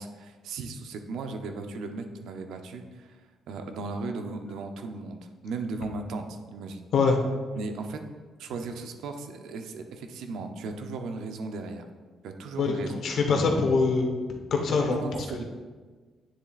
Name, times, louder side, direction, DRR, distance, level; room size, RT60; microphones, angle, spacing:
voice 1, 0.0-3.2 3.5-6.8 7.6-8.0 8.4-11.9 12.2-12.9 14.9-15.1 15.4-15.5, right 3 dB, 80° right, 5 dB, 0.7 m, -36 dB
voice 2, 12.6-14.1 14.5-15.4, left 4 dB, 65° left, 3 dB, 1.1 m, -24 dB
9.4 x 7.0 x 2.5 m, 1.4 s
cardioid pair, 90°, 0 cm